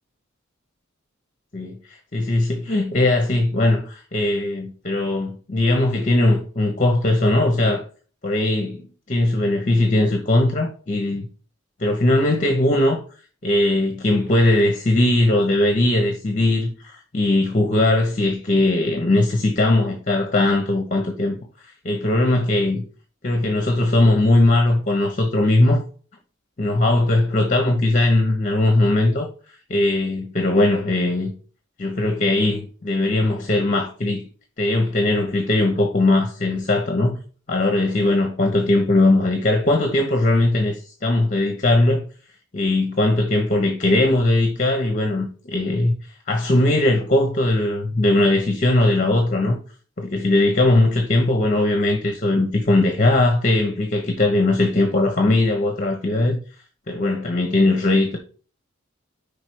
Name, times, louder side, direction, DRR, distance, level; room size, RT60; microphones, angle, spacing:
voice 1, 1.5-7.8 8.2-11.3 11.8-13.0 13.4-21.4 21.8-22.8 23.2-25.8 26.6-29.3 29.7-31.3 31.8-34.3 34.6-37.2 37.5-42.1 42.5-45.9 46.3-49.6 50.0-56.4 56.9-58.2, left 2 dB, 40° left, 1.0 m, -19 dB
5.2 x 4.8 x 4.6 m
head